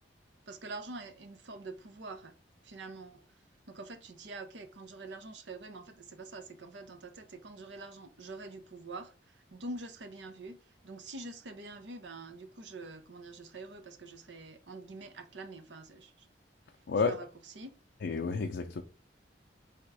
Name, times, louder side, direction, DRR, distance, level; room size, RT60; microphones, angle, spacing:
voice 1, 0.5-2.3 2.6-3.2 3.7-9.1 9.5-10.6 10.8-16.3 17.1-17.7, right 2 dB, 85° right, 0.7 m, -45 dB
voice 2, 18.0-18.8, left 4 dB, 65° left, 0.5 m, -30 dB
3.5 x 2.9 x 4.7 m
head